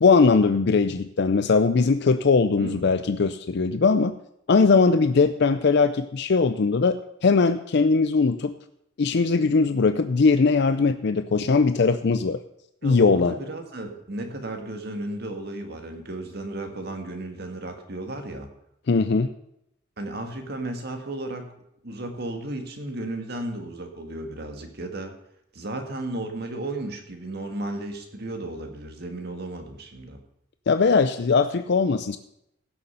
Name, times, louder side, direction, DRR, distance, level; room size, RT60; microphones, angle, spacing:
voice 1, 0.0-4.2 4.5-8.5 9.0-12.4 12.8-13.3 18.9-19.3 30.7-32.2, left 4 dB, 60° left, 10 dB, 0.5 m, -20 dB
voice 2, 2.6-2.9 12.8-18.5 20.0-21.5 21.8-25.1 25.5-30.2, right 2 dB, 55° right, 5 dB, 1.8 m, -34 dB
16.0 x 6.7 x 5.6 m, 0.79 s
head